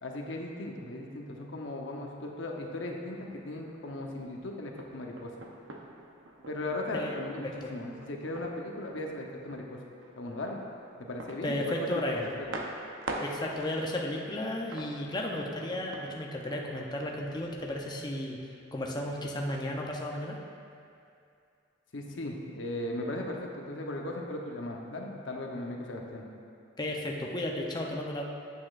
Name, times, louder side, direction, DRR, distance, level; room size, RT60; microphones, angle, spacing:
voice 1, 0.0-5.3 6.5-9.8 10.2-10.6 11.0-12.0 12.4-12.6 21.9-26.2, left 1 dB, 70° left, 0 dB, 0.8 m, -37 dB
sound 1, 3.1-18.0, right 2 dB, 75° right, 0.7 m, -45 dB
voice 2, 11.4-12.3 13.2-18.4 18.7-20.4 26.8-28.2, left 1 dB, 20° left, -1 dB, 0.6 m, -34 dB
8.6 x 8.3 x 2.5 m, 2.5 s
head